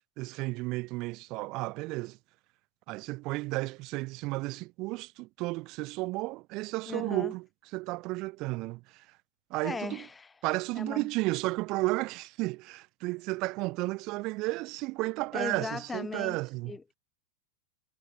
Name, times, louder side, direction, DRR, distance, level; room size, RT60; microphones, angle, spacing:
voice 1, 0.2-2.2 2.9-7.4 7.7-9.1 9.5-10.0 10.4-16.7, right 22 dB, 40° right, 1.0 m, -33 dB
voice 2, 6.9-7.3 9.6-10.3 10.7-11.1 15.3-16.4 16.7-16.9, left 4 dB, 15° left, 0.4 m, -37 dB
figure-of-eight pair, 90°, 0 cm